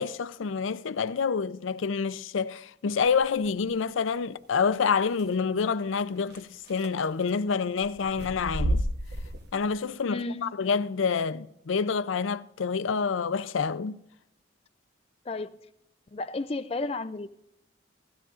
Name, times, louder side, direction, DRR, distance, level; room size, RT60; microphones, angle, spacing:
voice 1, 0.0-8.9 9.5-14.0, left 5 dB, 85° left, 0.5 m, -28 dB
sound 1, 3.0-3.5 5.2-5.3 6.3-6.4 6.7-7.3 7.8-9.7, equal, 55° right, 1.1 m, -31 dB
voice 2, 10.1-10.6 15.3-15.5 16.1-17.3, left 2 dB, 30° left, 0.4 m, -33 dB
17.0 x 13.5 x 2.5 m
head